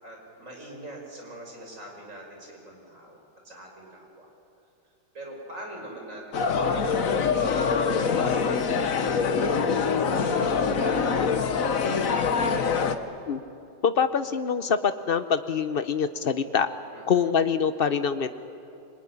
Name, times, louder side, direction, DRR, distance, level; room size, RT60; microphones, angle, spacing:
voice 1, 0.0-4.3 5.1-11.9 16.9-17.2, right 1 dB, 35° right, 0 dB, 5.8 m, -43 dB
sound 1, 6.3-12.9, left 5 dB, 45° left, 1.4 m, -24 dB
voice 2, 13.8-16.7 17.1-18.3, left 6 dB, 70° left, 10 dB, 0.5 m, -24 dB
25.5 x 22.0 x 10.0 m, 2.7 s
omnidirectional pair, 2.2 m